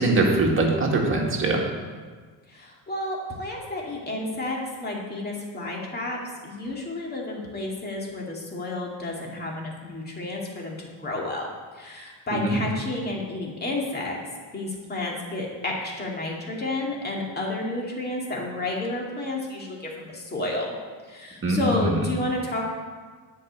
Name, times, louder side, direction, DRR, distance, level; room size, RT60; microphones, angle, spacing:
voice 1, 0.0-1.6 12.3-12.6 21.4-22.0, right 2 dB, 25° right, 0 dB, 2.0 m, -22 dB
voice 2, 2.5-11.5 11.7-14.2 14.5-20.7 21.1-22.7, left 2 dB, 20° left, -2 dB, 2.3 m, -31 dB
9.8 x 5.5 x 8.2 m, 1.5 s
cardioid pair, 135°, 45 cm